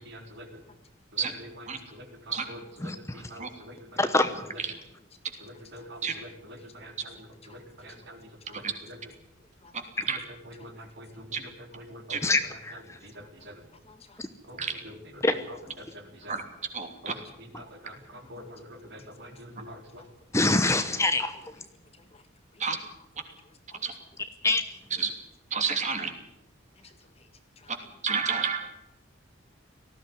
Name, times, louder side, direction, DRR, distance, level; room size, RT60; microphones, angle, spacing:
voice 1, 0.1-0.5 1.1-1.7 1.9-4.1 5.4-9.0 10.6-12.4 13.0-13.5 14.5-16.3 17.0-20.0, equal, 60° right, 4 dB, 3.9 m, -46 dB
voice 2, 2.8-3.2 4.0-4.4 12.2-12.7 15.2-15.4 20.3-21.4 24.4-24.6, left 2 dB, 15° left, 9 dB, 0.9 m, -25 dB
voice 3, 6.6-6.9 7.4-8.1 8.5-8.6 9.6-9.8 10.7-10.9 13.1-13.5 13.8-14.4 16.1-16.3 16.9-17.0 18.1-19.3 19.9-20.4 21.5-22.2 22.5-22.8 23.4-23.9 26.8-27.3 27.6-27.9, left 3 dB, 30° left, 8 dB, 1.9 m, -58 dB
voice 4, 16.7-17.1 22.6-22.8 23.8-23.9 25.0-25.1 25.5-26.1 28.0-28.7, right 6 dB, 40° right, 6 dB, 3.0 m, -29 dB
18.5 x 15.5 x 9.6 m, 0.88 s
head